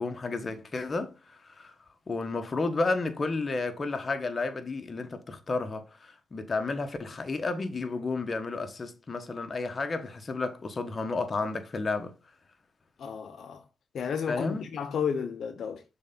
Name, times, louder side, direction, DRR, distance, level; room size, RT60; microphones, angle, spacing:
voice 1, 0.0-1.7 2.1-12.1 14.3-14.7, left 3 dB, 30° left, 1.1 m, -32 dB
voice 2, 13.0-13.6 13.9-15.8, left 7 dB, 60° left, 0.7 m, -32 dB
6.5 x 3.9 x 3.8 m
cardioid pair, 90°, 0 cm